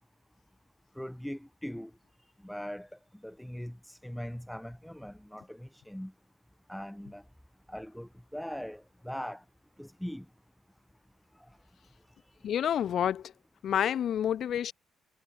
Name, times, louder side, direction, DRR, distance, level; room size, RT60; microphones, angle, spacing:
voice 1, 1.0-1.9 2.4-2.9 3.2-6.1 6.7-7.2 7.7-9.4 9.8-10.3, equal, 5° left, 7.2 m, -40 dB
voice 2, 12.4-13.3 13.6-14.7, left 9 dB, 65° left, 4.2 m, -28 dB
cardioid pair, 90°, 0 cm